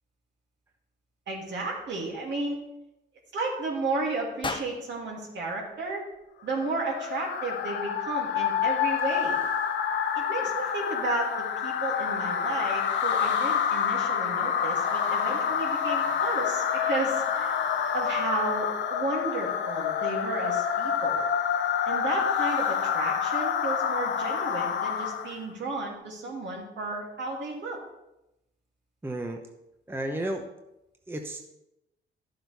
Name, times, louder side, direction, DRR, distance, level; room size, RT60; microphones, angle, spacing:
voice 1, 1.3-2.6 3.3-6.0 6.4-9.4 10.1-17.6 17.9-21.2 21.9-27.8, right 2 dB, 65° right, -1 dB, 2.7 m, -33 dB
sound 1, 4.4-6.6, left 3 dB, 25° left, 0.8 m, -39 dB
sound 2, 6.5-25.4, left 8 dB, 65° left, 0.9 m, -28 dB
voice 2, 29.0-29.4 29.9-30.4 31.1-31.4, right 1 dB, 10° right, 3 dB, 0.9 m, -32 dB
11.5 x 7.6 x 3.5 m, 0.90 s
cardioid pair, 90°, 20 cm